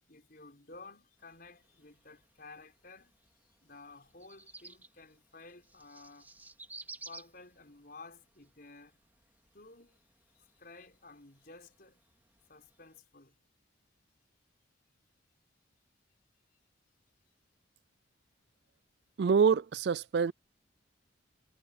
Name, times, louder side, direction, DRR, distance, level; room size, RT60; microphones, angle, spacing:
voice 1, 0.1-6.6 7.0-9.0 9.5-10.0 10.3-12.0 12.5-13.4, left 3 dB, 50° left, 5.1 m, -54 dB
sound 1, 1.2-13.0, right 3 dB, 10° right, 3.9 m, -56 dB
voice 2, 19.2-20.3, right 6 dB, 55° right, 0.4 m, -26 dB
head